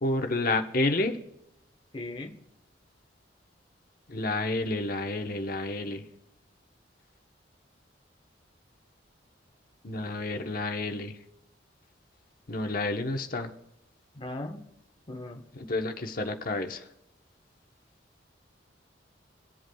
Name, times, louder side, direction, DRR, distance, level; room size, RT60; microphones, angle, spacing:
voice 1, 0.0-1.2 4.1-6.0 9.8-11.1 12.5-13.5 15.5-16.8, left 2 dB, 50° left, 5 dB, 1.0 m, -30 dB
voice 2, 1.9-2.3 14.1-14.6 15.1-15.4, left 2 dB, 30° left, 2 dB, 1.1 m, -38 dB
20.0 x 7.9 x 2.3 m, 0.83 s
head